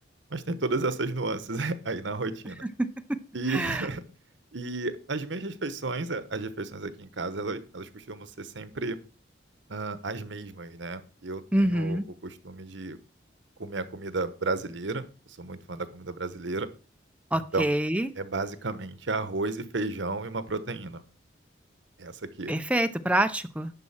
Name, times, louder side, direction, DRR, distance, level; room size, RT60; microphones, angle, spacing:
voice 1, 0.3-2.7 3.3-4.0 4.5-9.0 9.7-13.0 13.6-15.1 15.4-16.7 17.3-17.7 18.2-21.0 22.0-22.5, right 3 dB, 80° right, 13 dB, 1.0 m, -33 dB
voice 2, 3.5-3.9 11.5-12.0 17.3-18.1 22.5-23.7, right 1 dB, 5° right, 10 dB, 0.6 m, -26 dB
11.0 x 4.2 x 7.3 m, 0.36 s
head